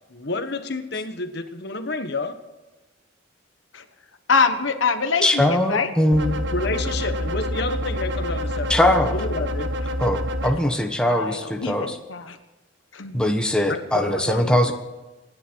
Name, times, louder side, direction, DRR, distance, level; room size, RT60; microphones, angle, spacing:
voice 1, 0.1-2.4 6.5-9.7 13.7-14.7, left 3 dB, 60° left, 8 dB, 1.4 m, -30 dB
voice 2, 4.3-5.9 11.1-12.4 12.9-13.3, left 5 dB, 85° left, 8 dB, 1.3 m, -24 dB
voice 3, 5.2-6.4 8.7-9.1 10.0-12.0 13.1-14.7, left 1 dB, 5° left, 4 dB, 1.3 m, -21 dB
sound 1, 6.1-10.5, left 1 dB, 65° right, 1.3 m, -27 dB
26.0 x 10.5 x 4.6 m, 1.1 s
head